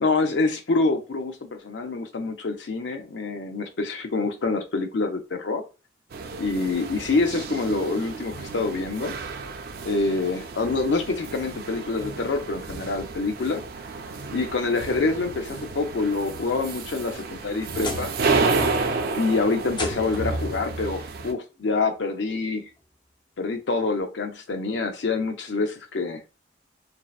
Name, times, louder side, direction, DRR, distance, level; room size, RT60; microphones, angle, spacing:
voice 1, 0.0-5.6 6.4-9.1 9.8-13.6 14.3-18.1 19.1-22.7 23.4-26.2, left 3 dB, 80° left, 6 dB, 0.5 m, -26 dB
sound 1, 6.1-21.3, right 3 dB, 60° right, 0.4 m, -31 dB
sound 2, 16.9-18.3 18.6-19.1 19.7-20.4 21.6-21.7 22.3-22.4 24.0-24.1, left 2 dB, 25° left, 0.4 m, -36 dB
2.7 x 2.1 x 2.3 m, 0.30 s
head